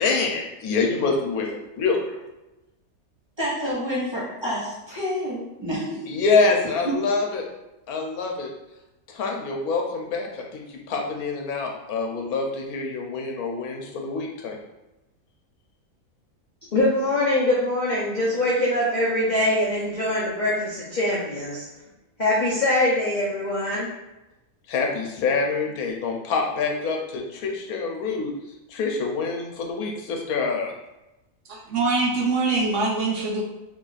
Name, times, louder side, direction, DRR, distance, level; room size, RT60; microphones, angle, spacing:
voice 1, 0.0-1.4 1.8-2.2 6.1-7.5 7.9-8.5 9.1-14.6 24.7-28.3 28.7-30.7, left 4 dB, 90° left, 1 dB, 1.1 m, -26 dB
voice 2, 3.4-6.0, equal, 25° right, -8 dB, 0.8 m, -28 dB
voice 3, 16.7-21.7 22.2-23.9, left 1 dB, 60° left, -5 dB, 0.4 m, -23 dB
voice 4, 31.5-33.4, right 3 dB, 65° right, -2 dB, 0.9 m, -23 dB
3.0 x 2.4 x 3.8 m, 0.99 s
omnidirectional pair, 1.5 m